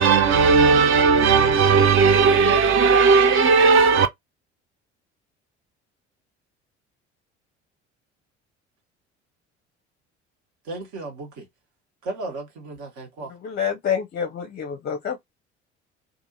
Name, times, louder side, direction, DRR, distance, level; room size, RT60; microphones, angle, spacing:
voice 1, 0.0-4.1, right 5 dB, 40° right, 0.5 m, -16 dB
voice 2, 10.6-11.5 12.0-13.3, right 2 dB, 55° right, 1.2 m, -35 dB
voice 3, 13.4-15.2, left 7 dB, 30° left, 0.6 m, -27 dB
2.6 x 2.5 x 2.7 m
figure-of-eight pair, 55°, 35 cm